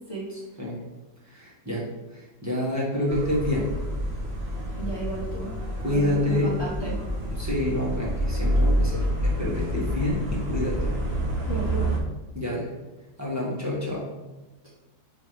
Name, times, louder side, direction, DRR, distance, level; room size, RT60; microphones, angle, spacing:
voice 1, 1.3-1.8 2.1-3.6 5.8-6.5 7.3-10.9 12.3-12.7 13.2-14.0, left 1 dB, 10° right, -7 dB, 1.5 m, -28 dB
sound 1, 3.1-12.0, equal, 40° right, 1.2 m, -28 dB
voice 2, 4.8-5.6 5.9-7.0 11.5-11.9 14.6-14.7, right 2 dB, 20° left, -6 dB, 0.7 m, -33 dB
9.4 x 3.1 x 3.3 m, 1.1 s
omnidirectional pair, 1.9 m